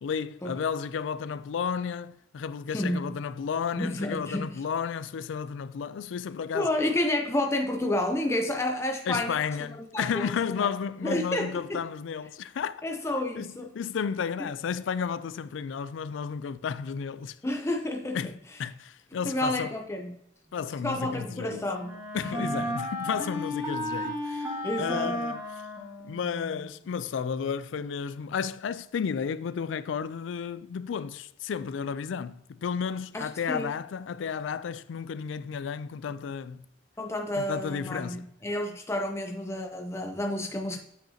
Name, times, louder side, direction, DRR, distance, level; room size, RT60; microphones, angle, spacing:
voice 1, 0.0-6.7 9.1-12.8 13.3-17.4 18.1-18.3 18.6-19.7 20.5-21.6 22.1-25.6 26.0-36.6 37.4-38.3, left 6 dB, 80° left, 0.4 m, -32 dB
voice 2, 2.7-3.2 3.8-4.6 6.5-9.4 9.9-10.3 10.6-10.7 11.0-11.8 12.8-13.7 17.4-18.2 19.2-20.2 20.8-22.0 22.4-22.5 24.6-25.2 33.1-33.7 37.0-40.8, left 1 dB, 15° left, 0.5 m, -30 dB
Wind instrument woodwind instrument, 20.9-26.7, left 1 dB, 15° right, 1.7 m, -34 dB
7.9 x 5.8 x 2.8 m
head